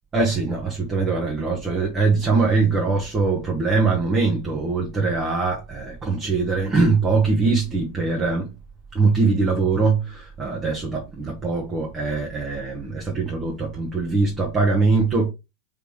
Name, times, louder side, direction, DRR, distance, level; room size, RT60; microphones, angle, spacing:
voice 1, 0.1-8.5 8.9-15.3, right 4 dB, 20° right, 1.2 m, -22 dB
4.9 x 3.5 x 3.1 m
figure-of-eight pair, 90°, 0 cm